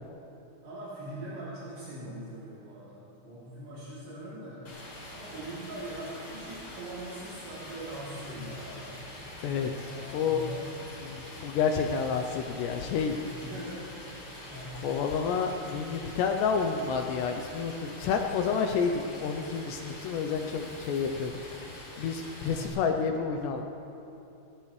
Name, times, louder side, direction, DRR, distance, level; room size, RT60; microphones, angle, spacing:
voice 1, 0.6-4.7 5.1-8.9 9.8-10.7 13.3-13.8 14.5-14.8 22.4-22.7, right 1 dB, 65° right, -9 dB, 5.0 m, -41 dB
Stream, 4.7-22.7, left 1 dB, 40° left, 4.2 m, -45 dB
voice 2, 9.4-9.9 10.1-10.4 11.0-13.2 14.8-21.4 22.0-23.7, left 6 dB, 80° left, 4 dB, 2.6 m, -29 dB
23.0 x 18.0 x 3.3 m, 2.8 s
omnidirectional pair, 5.4 m